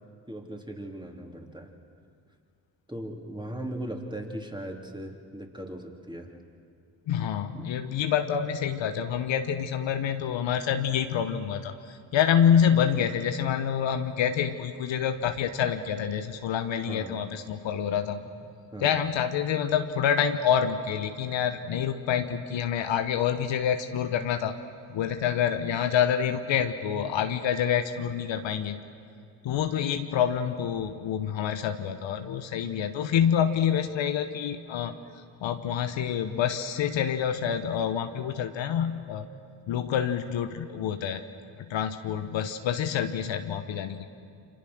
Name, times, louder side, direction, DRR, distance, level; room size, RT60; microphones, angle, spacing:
voice 1, 0.3-1.7 2.9-6.3 7.5-7.8 16.9-17.3 18.0-18.1 18.7-19.0, right 1 dB, 10° right, 1 dB, 3.7 m, -38 dB
voice 2, 7.1-18.2 18.8-24.6 24.9-28.8 29.4-35.0 35.4-39.3 39.7-41.2 41.6-44.1, left 8 dB, 65° left, 8 dB, 1.3 m, -27 dB
28.0 x 25.5 x 6.3 m, 2.3 s
hypercardioid pair, 40°, 49 cm